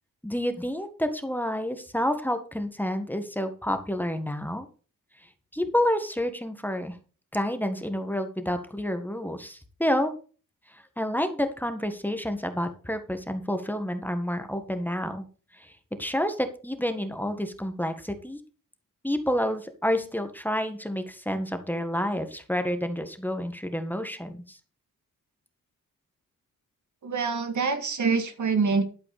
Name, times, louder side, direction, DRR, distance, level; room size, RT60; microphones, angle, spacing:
voice 1, 0.2-4.7 5.5-7.0 7.3-10.1 10.7-15.2 15.5-15.7 16.0-18.4 19.0-24.6, equal, 5° left, 8 dB, 1.7 m, -29 dB
voice 2, 27.0-28.8, right 5 dB, 60° right, 8 dB, 1.9 m, -25 dB
12.5 x 4.9 x 6.7 m, 0.38 s
cardioid pair, 70°, 33 cm